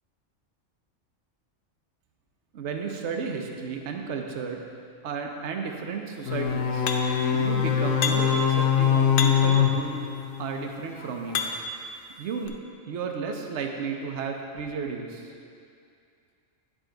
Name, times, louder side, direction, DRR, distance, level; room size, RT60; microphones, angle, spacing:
voice 1, 2.5-4.6 5.0-6.9 7.3-10.0 10.4-11.5 12.2-12.6 12.8-15.3, right 5 dB, 65° right, 3 dB, 1.0 m, -33 dB
sound 1, 6.3-10.7, left 8 dB, 80° left, 0.9 m, -23 dB
sound 2, 6.9-7.3 8.0-8.5 9.2-9.6 10.4-11.8 12.5-12.6, left 5 dB, 60° left, 0.6 m, -31 dB
9.4 x 5.1 x 3.8 m, 2.4 s
omnidirectional pair, 1.3 m